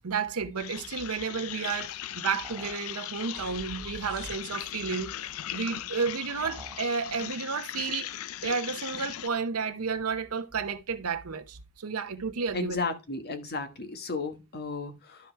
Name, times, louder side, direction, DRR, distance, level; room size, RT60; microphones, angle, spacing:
voice 1, 0.0-5.1 5.5-8.1 8.4-12.8, right 5 dB, 80° right, 0.8 m, -32 dB
sound 1, 0.6-9.3, left 12 dB, 70° left, 0.4 m, -38 dB
sound 2, 2.4-2.9 6.4-6.9, right 2 dB, 15° right, 0.5 m, -47 dB
sound 3, 3.4-4.9, right 1 dB, 45° right, 1.4 m, -45 dB
voice 2, 12.5-15.3, left 4 dB, 45° left, 1.3 m, -34 dB
12.0 x 4.7 x 4.5 m
head